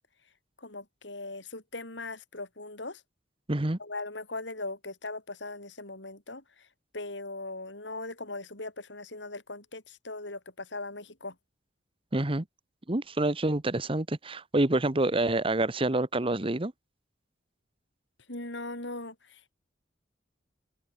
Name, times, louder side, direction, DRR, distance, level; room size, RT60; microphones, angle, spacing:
voice 1, 0.6-3.0 3.8-6.4 6.9-11.3 18.3-19.5, left 2 dB, 80° left, 7.2 m, -39 dB
voice 2, 3.5-3.8 12.1-12.4 12.9-16.7, right 2 dB, 30° right, 1.1 m, -27 dB
open air
head